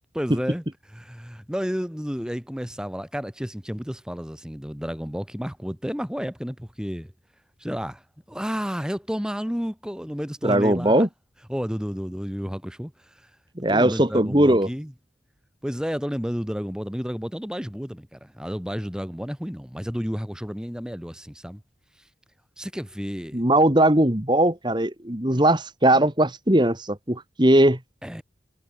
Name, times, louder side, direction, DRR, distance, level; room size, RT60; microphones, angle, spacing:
voice 1, 0.1-7.1 7.6-8.0 8.3-11.1 11.5-13.3 13.7-14.9 15.6-21.6 22.0-22.1 22.6-23.4 28.0-28.2, equal, 5° right, 2.0 m, -31 dB
voice 2, 10.4-11.1 13.6-14.7 23.3-27.8, right 1 dB, 25° right, 2.2 m, -19 dB
head